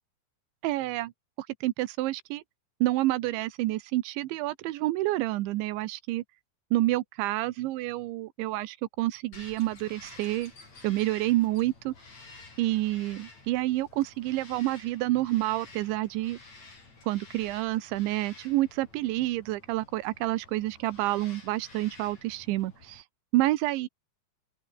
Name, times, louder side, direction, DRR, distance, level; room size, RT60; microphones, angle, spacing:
voice 1, 0.6-1.1 1.4-2.4 2.8-6.2 6.7-10.5 10.8-11.9 12.6-16.4 17.1-23.0 23.3-23.9, right 17 dB, 80° right, 3.4 m, -28 dB
Bird vocalization bird call bird song, 9.3-23.0, left 3 dB, 35° left, 8.2 m, -51 dB
open air
omnidirectional pair, 5.3 m